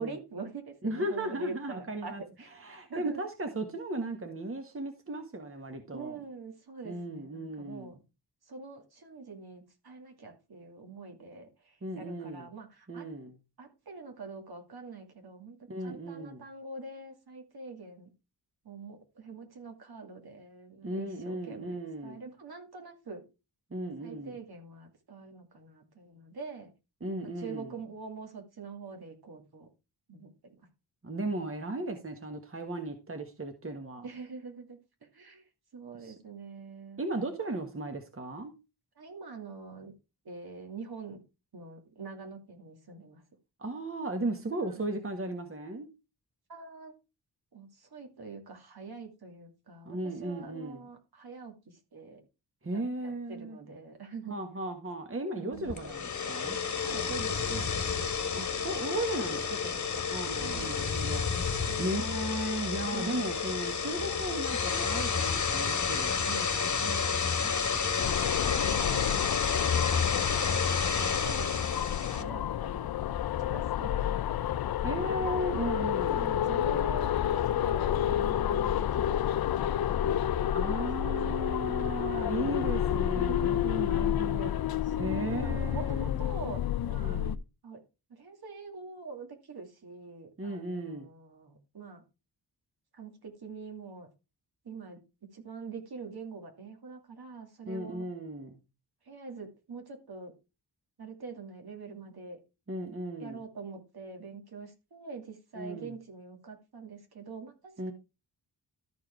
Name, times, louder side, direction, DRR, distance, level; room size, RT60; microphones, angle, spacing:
voice 1, 0.0-3.2 5.9-8.0 8.4-13.1 13.6-18.1 18.6-23.2 24.0-26.7 27.2-29.7 30.1-30.5 34.0-35.5 35.7-37.0 37.4-37.5 39.0-39.9 40.2-41.2 41.5-43.2 44.7-44.9 46.5-46.9 47.5-52.2 52.7-54.4 55.3-55.8 56.8-57.7 58.0-58.1 60.4-60.7 61.7-62.0 62.9-63.3 66.2-66.5 66.8-67.8 68.1-69.8 70.2-70.8 71.1-72.9 73.4-74.2 76.1-80.7 81.3-81.6 82.3-82.7 83.1-83.6 84.8-87.2 87.6-87.8 88.1-92.0 92.9-94.1 94.6-95.0 95.3-98.1 99.0-100.3 101.0-102.4 103.2-107.9, right 4 dB, 65° right, 2.6 m, -45 dB
voice 2, 0.8-2.2 2.6-6.2 6.8-7.9 11.8-12.5 12.9-13.3 15.7-16.4 20.8-22.2 23.7-24.4 27.0-27.7 31.0-34.0 36.0-36.1 37.0-38.5 43.6-45.9 49.8-50.8 52.6-53.6 54.3-56.6 58.3-66.3 74.8-76.3 80.5-84.5 85.0-86.1 86.9-87.4 90.4-91.1 97.6-98.6 102.7-103.4 105.5-105.9 107.8-107.9, right 2 dB, 35° right, 1.5 m, -36 dB
sound 1, 55.7-72.2, left 6 dB, 45° left, 1.2 m, -30 dB
sound 2, 68.0-87.4, left 11 dB, 65° left, 0.5 m, -30 dB
13.0 x 4.8 x 4.6 m
wide cardioid pair, 90°, 40 cm